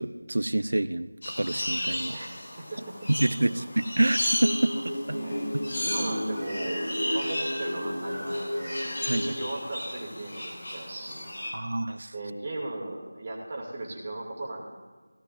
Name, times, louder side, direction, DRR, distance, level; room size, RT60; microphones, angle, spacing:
voice 1, 0.0-2.2 3.1-4.8 5.1-5.2 5.5-5.6 9.1-9.4 11.5-12.1, right 1 dB, 65° right, 13 dB, 0.5 m, -27 dB
sound 1, 1.2-11.5, left 1 dB, 50° left, 4.4 m, -34 dB
voice 2, 2.6-2.9 3.4-3.6 4.7-4.8 5.1-5.4 5.8-8.8 9.2-11.3 12.1-14.6, right 2 dB, 30° right, -2 dB, 2.3 m, -37 dB
sound 2, 4.4-9.6, equal, 80° left, 2.0 m, -33 dB
16.5 x 15.0 x 2.5 m, 1.3 s
figure-of-eight pair, 170°, 0 cm